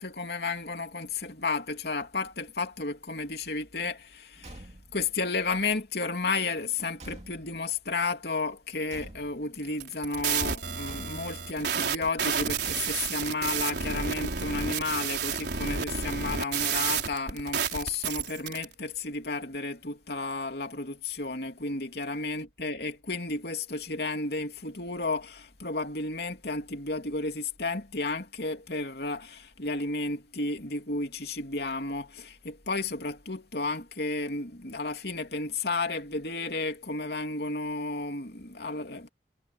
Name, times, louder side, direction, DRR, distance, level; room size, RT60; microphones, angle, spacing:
voice 1, 0.0-4.7 4.9-39.1, left 3 dB, 65° left, 3.0 m, -32 dB
Car / Truck / Slam, 4.3-5.1 6.3-7.8 8.9-9.6 10.8-11.5 12.6-13.3, right 1 dB, 40° right, 2.7 m, -48 dB
sound 1, 9.7-18.7, right 7 dB, 75° right, 4.0 m, -31 dB
head